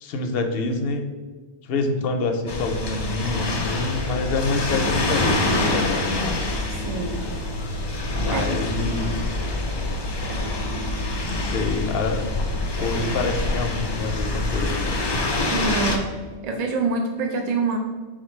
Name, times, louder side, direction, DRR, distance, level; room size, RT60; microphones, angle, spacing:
voice 1, 0.0-1.0 1.7-6.5 8.1-9.3 11.3-12.2 12.8-15.0, left 3 dB, 65° left, 6 dB, 0.7 m, -27 dB
sound 1, 2.5-16.0, left 2 dB, 40° left, 0.3 m, -26 dB
voice 2, 6.7-7.2 8.3-8.5 15.5-16.1 16.4-17.8, right 3 dB, 55° right, 2 dB, 0.4 m, -25 dB
sound 2, 8.2-10.8 11.2-11.4 11.8-12.7 13.2-13.5 13.9-14.3 14.6-15.0 15.4-15.6 16.0-16.4, left 3 dB, 90° left, 0.9 m, -40 dB
4.4 x 2.5 x 4.2 m, 1.3 s
omnidirectional pair, 1.1 m